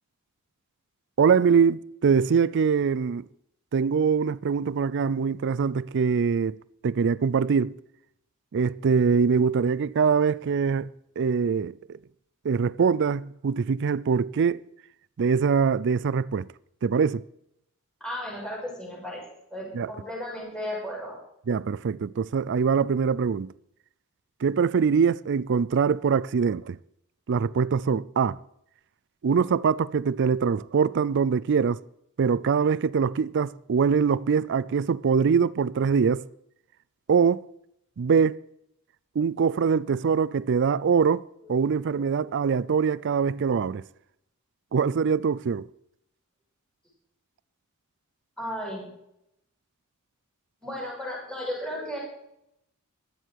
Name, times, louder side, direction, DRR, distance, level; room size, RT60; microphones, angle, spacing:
voice 1, 1.2-3.3 3.7-6.6 6.8-7.8 8.5-12.0 12.4-14.7 15.2-16.5 16.8-17.2 19.7-19.9 21.5-23.5 24.4-26.8 27.3-28.4 29.2-31.8 32.2-36.3 37.1-37.5 38.0-38.4 39.2-43.9 44.7-45.7, right 6 dB, 55° right, 0.4 m, -23 dB
voice 2, 18.0-19.2 19.5-21.2 48.4-48.9 50.6-52.0, equal, 5° left, 6.1 m, -34 dB
16.0 x 12.0 x 4.7 m
head